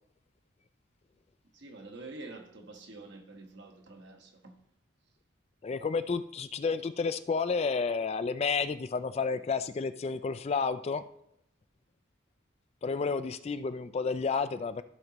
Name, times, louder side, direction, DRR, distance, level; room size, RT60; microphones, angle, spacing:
voice 1, 1.5-4.6, right 2 dB, 60° right, 1.4 m, -47 dB
voice 2, 5.6-11.0 12.8-14.8, left 5 dB, 30° left, 0.3 m, -31 dB
15.0 x 5.2 x 3.0 m
head